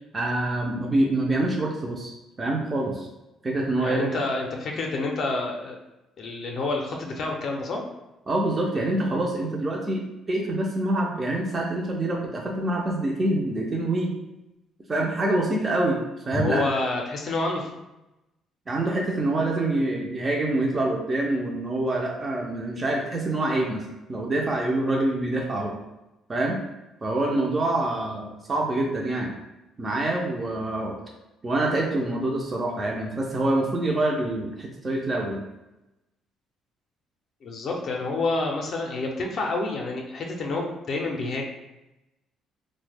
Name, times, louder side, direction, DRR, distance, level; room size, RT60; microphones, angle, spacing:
voice 1, 0.1-2.1 2.4-3.1 3.4-4.2 8.3-10.0 10.3-14.1 14.9-16.0 16.3-16.7 18.7-23.8 24.1-25.8 26.3-26.6 27.0-29.3 29.8-31.0 31.4-35.5, right 2 dB, 20° right, -1 dB, 0.4 m, -26 dB
voice 2, 3.8-5.8 6.2-7.8 16.3-17.7 37.4-41.5, left 2 dB, 45° left, 1 dB, 0.4 m, -28 dB
3.1 x 2.0 x 3.3 m, 0.96 s
cardioid pair, 155°, 0 cm